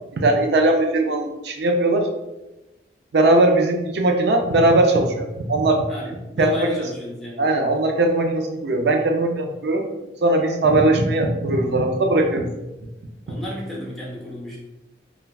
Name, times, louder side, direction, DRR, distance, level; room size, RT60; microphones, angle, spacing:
voice 1, 0.1-2.1 3.1-5.8 6.4-6.7 7.4-9.9 10.2-12.5 13.3-13.4, right 2 dB, 70° right, 4 dB, 0.4 m, -19 dB
voice 2, 5.9-7.8 9.9-10.1 13.3-14.6, equal, ahead, -6 dB, 0.7 m, -34 dB
3.3 x 2.2 x 2.3 m, 1.0 s
head